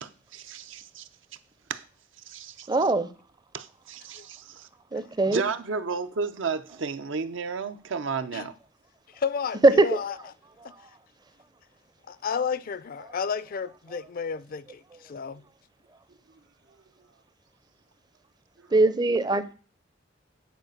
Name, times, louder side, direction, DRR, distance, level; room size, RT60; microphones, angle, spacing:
voice 1, 0.0-1.1 1.7-1.8 2.3-2.7 3.5-4.7 5.3-8.5, right 5 dB, 75° right, 0.6 m, -32 dB
voice 2, 2.7-3.1 4.9-5.4 9.6-9.9 18.7-19.4, right 2 dB, 20° right, 0.5 m, -20 dB
voice 3, 9.2-10.2 10.6-10.7 12.1-15.4, left 6 dB, 50° left, 0.4 m, -32 dB
9.2 x 4.1 x 6.4 m
head